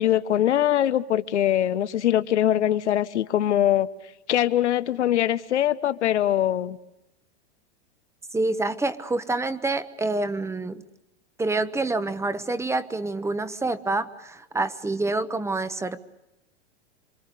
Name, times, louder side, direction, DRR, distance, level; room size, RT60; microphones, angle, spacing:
voice 1, 0.0-3.9 4.3-6.8, left 11 dB, 90° left, 1.2 m, -22 dB
voice 2, 8.3-10.8 11.4-16.0, right 2 dB, 10° right, 1.1 m, -27 dB
28.0 x 24.5 x 6.7 m
hypercardioid pair, 125°, 34 cm